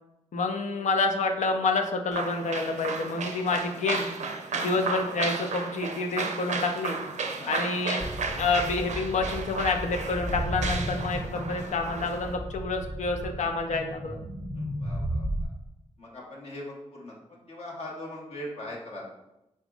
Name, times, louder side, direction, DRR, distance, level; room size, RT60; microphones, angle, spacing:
voice 1, 0.3-4.1 4.5-7.0 7.5-14.2, left 3 dB, 75° left, 4 dB, 0.5 m, -28 dB
sound 1, 2.1-12.4, right 4 dB, 70° right, 0.5 m, -34 dB
sound 2, 8.0-15.5, equal, 10° left, 1.0 m, -34 dB
voice 2, 14.5-15.5 16.0-19.0, left 1 dB, 55° left, -3 dB, 1.2 m, -41 dB
4.1 x 3.5 x 2.4 m, 0.89 s
cardioid pair, 60°, 13 cm